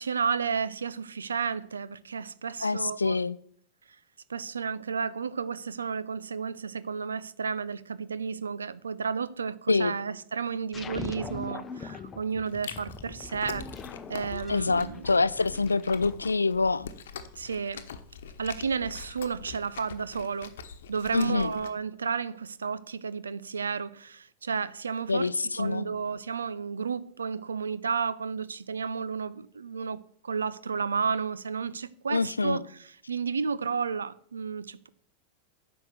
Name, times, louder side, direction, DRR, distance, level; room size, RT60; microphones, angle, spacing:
voice 1, 0.0-3.2 4.3-13.7 14.1-15.0 17.4-17.9 18.4-20.5 20.9-25.3 25.6-32.6 33.1-34.9, right 5 dB, 70° right, 0.6 m, -32 dB
voice 2, 2.6-3.4 9.7-10.0 14.5-16.9 21.1-21.5 25.1-25.9 32.1-32.6, left 3 dB, 80° left, 0.4 m, -26 dB
sound 1, 10.7-16.1, left 4 dB, 20° left, 0.8 m, -41 dB
Chewing mastication, 12.5-21.7, left 7 dB, 60° left, 1.1 m, -44 dB
10.0 x 6.5 x 7.9 m
figure-of-eight pair, 90°, 0 cm